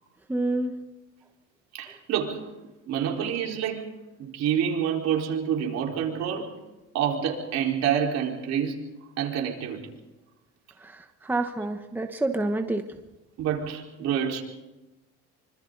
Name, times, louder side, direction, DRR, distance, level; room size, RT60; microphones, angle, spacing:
voice 1, 0.3-0.7 10.8-10.9 11.2-12.8, right 2 dB, 5° right, 5 dB, 1.1 m, -27 dB
voice 2, 1.7-2.5 2.9-3.9 4.2-6.5 6.9-8.8 9.2-9.8 13.4-14.4, right 8 dB, 60° right, 0 dB, 4.5 m, -27 dB
26.5 x 25.5 x 4.0 m, 1.0 s
cardioid pair, 130°, 30 cm